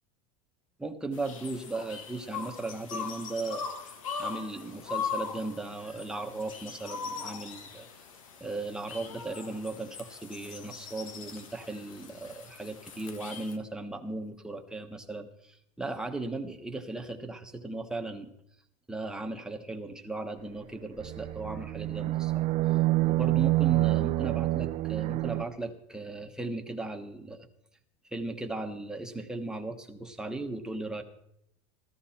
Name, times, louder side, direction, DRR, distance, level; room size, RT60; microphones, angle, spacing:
voice 1, 0.8-7.9 8.4-18.3 18.9-22.5 23.0-27.5 28.1-31.0, right 2 dB, 5° right, 4 dB, 1.2 m, -37 dB
sound 1, 1.1-13.6, left 6 dB, 90° left, 1.7 m, -40 dB
sound 2, 21.0-25.4, right 18 dB, 40° right, 0.5 m, -27 dB
15.0 x 13.5 x 4.4 m, 0.75 s
supercardioid pair, 125°, 16 cm